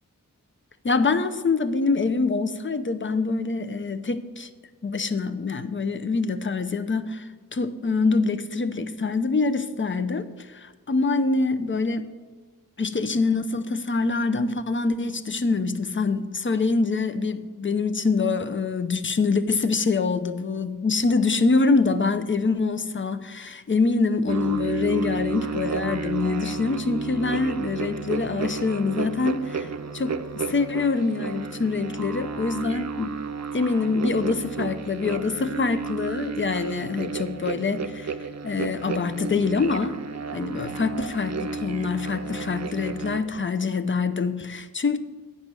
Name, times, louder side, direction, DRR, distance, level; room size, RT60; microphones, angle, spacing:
voice 1, 0.8-4.5 4.8-12.1 12.8-29.7 29.9-33.2 33.5-38.1 38.4-40.0 40.3-45.0, left 4 dB, 35° left, 11 dB, 0.5 m, -25 dB
sound 1, 24.3-43.2, right 4 dB, 50° right, 0.5 m, -32 dB
9.2 x 5.4 x 6.1 m, 1.4 s
wide cardioid pair, 50°, 34 cm